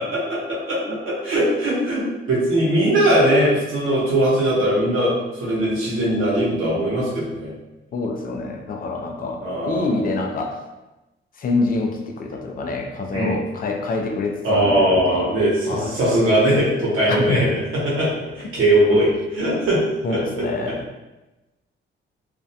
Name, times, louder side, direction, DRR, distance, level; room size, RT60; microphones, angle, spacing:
voice 1, 0.0-7.5 9.4-10.0 13.1-13.3 14.4-17.5 17.8-19.8 20.1-20.5, right 1 dB, 85° right, -7 dB, 0.9 m, -20 dB
voice 2, 7.9-10.6 11.4-15.3 15.7-15.9 17.1-17.4 20.0-20.8, left 3 dB, 45° left, 2 dB, 0.4 m, -26 dB
2.4 x 2.1 x 2.6 m, 1.0 s
wide cardioid pair, 150°, 20 cm